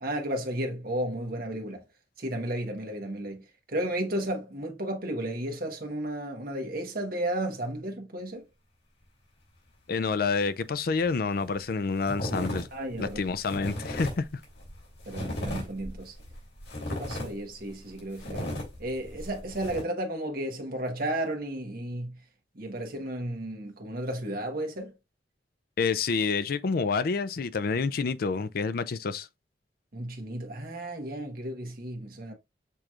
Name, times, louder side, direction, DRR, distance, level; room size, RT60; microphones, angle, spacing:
voice 1, 0.0-1.8 2.2-8.4 12.7-13.2 15.1-16.1 16.9-18.5 18.8-22.2 22.5-24.9 29.9-32.3, right 1 dB, 55° right, 1.3 m, -33 dB
voice 2, 9.9-12.7 13.0-14.3 25.8-29.3, left 4 dB, 55° left, 0.4 m, -28 dB
sound 1, 11.0-11.1 11.4-11.7 12.0-19.8, left 1 dB, 90° left, 3.1 m, -36 dB
6.8 x 3.0 x 2.4 m
head